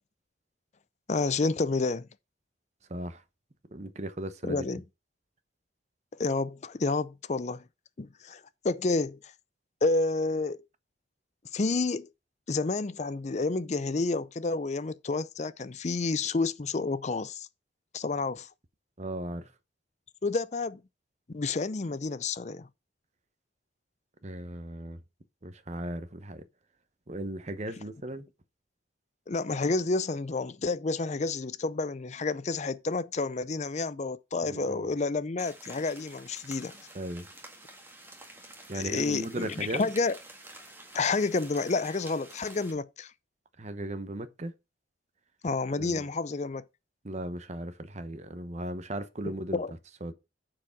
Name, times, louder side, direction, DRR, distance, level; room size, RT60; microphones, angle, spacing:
voice 1, 1.1-2.1 4.5-4.8 6.2-7.6 8.0-9.2 9.8-10.6 11.5-12.1 12.5-17.5 17.9-18.5 20.2-20.8 21.3-22.7 29.3-36.7 38.7-40.2 40.9-43.1 45.4-46.6 49.2-49.7, left 3 dB, 40° left, 0.5 m, -30 dB
voice 2, 2.9-3.2 3.7-4.6 19.0-19.5 24.2-25.0 25.4-26.4 27.1-28.3 34.4-34.9 36.9-37.3 38.7-39.9 43.6-44.5 45.7-46.0 47.0-49.6 50.0-50.1, right 1 dB, 40° right, 0.9 m, -37 dB
sound 1, 35.4-42.7, right 2 dB, 10° right, 1.7 m, -49 dB
8.5 x 4.8 x 5.9 m
head